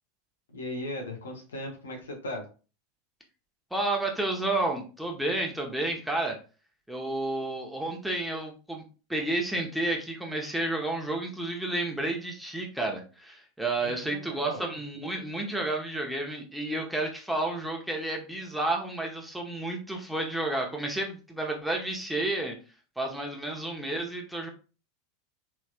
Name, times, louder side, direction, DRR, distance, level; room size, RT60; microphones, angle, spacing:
voice 1, 0.5-2.5 13.8-14.6, left 1 dB, 85° left, 2 dB, 0.9 m, -37 dB
voice 2, 3.7-6.4 6.9-8.8 9.1-22.6 23.0-24.5, right 2 dB, 5° right, 0 dB, 0.9 m, -31 dB
3.2 x 2.9 x 2.4 m, 0.34 s
hypercardioid pair, 95°, 0 cm